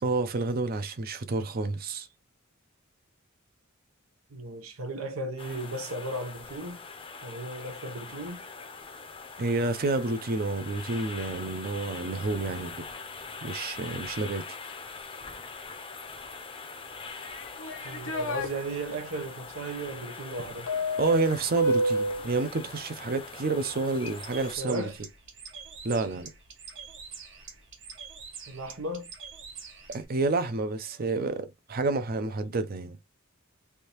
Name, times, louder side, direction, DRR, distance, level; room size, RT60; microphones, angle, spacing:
voice 1, 0.0-2.1 9.4-12.9 13.4-14.4 21.0-24.9 25.8-26.3 29.9-33.0, right 3 dB, 45° right, 0.5 m, -29 dB
voice 2, 4.3-6.8 7.2-8.4 17.8-20.7 24.6-25.0 28.5-29.1, right 2 dB, 85° right, 0.8 m, -36 dB
sound 1, 5.4-24.6, left 4 dB, 25° left, 0.6 m, -43 dB
sound 2, 17.2-18.5 20.7-22.3, equal, 70° left, 0.7 m, -29 dB
Bird, 24.0-30.1, right 6 dB, 60° right, 1.1 m, -45 dB
3.4 x 2.7 x 2.9 m
head